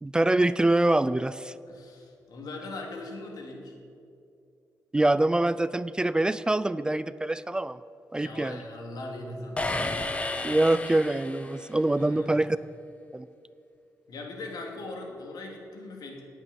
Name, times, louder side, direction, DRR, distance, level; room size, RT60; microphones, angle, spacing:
voice 1, 0.0-1.5 4.9-7.8 8.1-8.6 10.4-12.6 13.1-13.3, right 2 dB, 15° right, 15 dB, 0.3 m, -25 dB
voice 2, 1.7-3.8 8.2-10.2 12.0-12.5 14.1-16.2, left 2 dB, 80° left, 1 dB, 2.8 m, -40 dB
sound 1, 9.6-11.8, left 2 dB, 20° left, 0.9 m, -32 dB
18.5 x 8.7 x 6.9 m, 2.5 s
wide cardioid pair, 140°, 7 cm